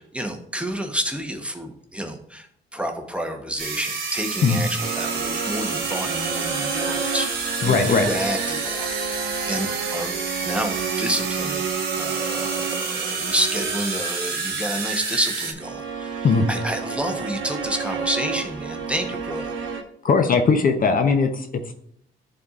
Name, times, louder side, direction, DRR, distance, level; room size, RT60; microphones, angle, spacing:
voice 1, 0.0-2.5 2.7-10.1 10.4-11.7 12.0-19.5, equal, 5° right, 4 dB, 0.9 m, -29 dB
sound 1, 3.6-15.5, right 4 dB, 50° right, 1.4 m, -29 dB
sound 2, 4.8-14.1 15.6-19.8, right 6 dB, 75° right, 0.9 m, -31 dB
voice 2, 7.6-8.1 16.2-16.5 20.0-21.7, left 4 dB, 45° left, 6 dB, 0.7 m, -19 dB
10.5 x 4.1 x 2.4 m, 0.67 s
cardioid pair, 90°, 20 cm